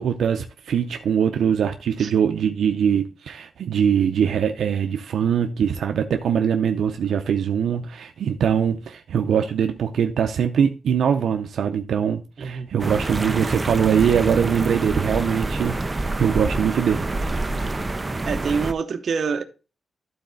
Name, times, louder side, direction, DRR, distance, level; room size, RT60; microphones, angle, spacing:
voice 1, 0.0-15.8 16.2-17.1, right 8 dB, 90° right, 0.5 m, -22 dB
voice 2, 12.4-12.7 18.3-19.4, right 5 dB, 60° right, 0.8 m, -26 dB
sound 1, 12.8-18.7, right 2 dB, 20° right, 0.5 m, -27 dB
12.0 x 4.1 x 3.8 m
wide cardioid pair, 130°, 0 cm